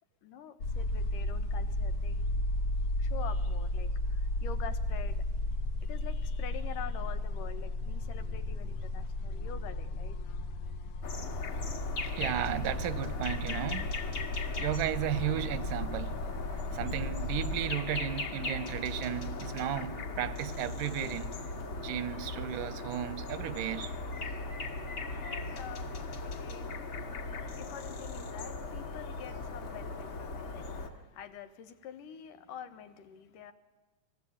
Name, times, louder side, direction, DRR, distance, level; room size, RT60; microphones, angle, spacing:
voice 1, 0.2-2.2 3.0-5.2 5.8-10.2 24.6-33.5, left 8 dB, 85° left, 3.0 m, -47 dB
sound 1, 0.6-17.7, left 2 dB, 60° left, 1.7 m, -34 dB
sound 2, 11.0-30.9, left 3 dB, 45° left, 2.6 m, -38 dB
voice 2, 12.2-13.9 14.6-16.1 16.5-21.3 21.8-23.9, right 11 dB, 85° right, 2.7 m, -34 dB
29.0 x 19.5 x 8.7 m
omnidirectional pair, 3.7 m